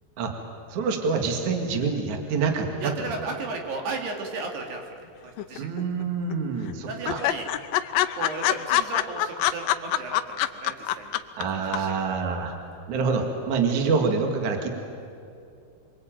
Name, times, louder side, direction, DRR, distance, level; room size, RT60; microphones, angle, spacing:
voice 1, 0.7-2.9 5.6-7.2 11.4-12.6 12.9-14.7, right 5 dB, 50° right, 3 dB, 3.2 m, -26 dB
voice 2, 2.8-4.8 5.2-5.7 6.9-7.5 8.1-11.1 11.7-11.9, right 3 dB, 70° right, 2 dB, 4.5 m, -34 dB
sound 1, 5.4-6.0 6.3-6.4 6.7-6.8 7.1-11.4 11.7-11.8, left 13 dB, 85° left, 1.9 m, -24 dB
26.5 x 22.5 x 9.1 m, 2.6 s
omnidirectional pair, 4.9 m